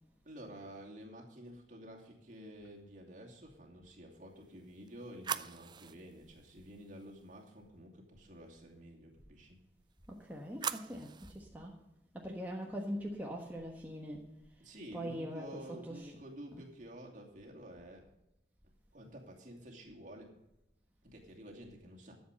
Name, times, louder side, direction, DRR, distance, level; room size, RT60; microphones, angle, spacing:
voice 1, 0.2-9.6 14.6-18.0 18.9-20.3 21.0-22.2, equal, 45° right, 0 dB, 2.7 m, -51 dB
sound 1, 4.4-7.5 9.9-11.4, right 7 dB, 25° right, 0.4 m, -44 dB
voice 2, 10.1-11.8 12.1-16.1 16.5-16.7, equal, 10° right, -1 dB, 1.3 m, -43 dB
13.0 x 7.5 x 6.5 m, 0.87 s
head